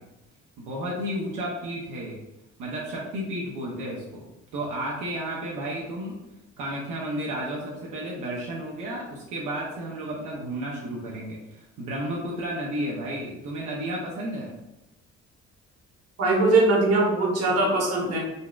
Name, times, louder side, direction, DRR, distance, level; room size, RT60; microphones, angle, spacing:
voice 1, 0.6-2.2 2.6-4.2 4.5-6.1 6.6-14.5, right 1 dB, 85° right, -3 dB, 0.7 m, -32 dB
voice 2, 16.2-18.2, right 2 dB, 55° right, -1 dB, 1.1 m, -21 dB
3.9 x 2.3 x 2.3 m, 0.95 s
cardioid pair, 90°, 30 cm